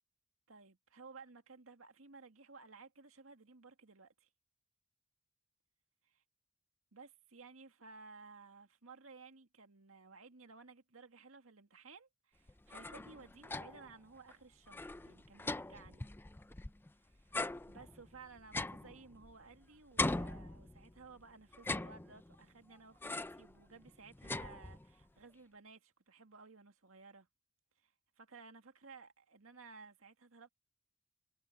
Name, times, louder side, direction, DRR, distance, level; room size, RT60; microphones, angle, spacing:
voice 1, 0.5-4.3 6.9-16.1 17.0-27.3 27.8-30.5, right 4 dB, 75° right, 2.1 m, -57 dB
sound 1, 12.5-13.9 14.3-14.4 14.7-16.9 17.3-19.6 20.0-21.1 21.5-22.4 23.0-23.5 23.9-25.0, left 2 dB, 10° left, 0.4 m, -41 dB
head